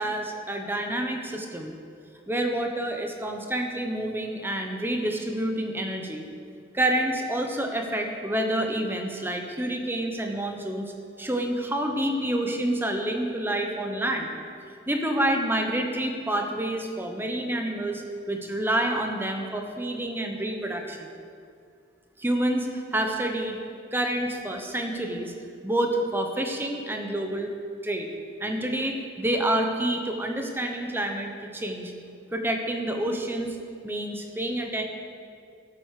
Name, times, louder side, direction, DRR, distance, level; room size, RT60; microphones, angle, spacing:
voice 1, 0.0-1.7 2.3-6.2 6.7-10.9 11.2-14.3 14.9-21.1 22.2-23.6 23.9-25.3 25.6-27.5 27.8-28.1 28.4-31.9 32.3-33.6 33.8-34.8, right 1 dB, 10° right, 3 dB, 1.0 m, -28 dB
12.0 x 8.1 x 6.6 m, 2.3 s
head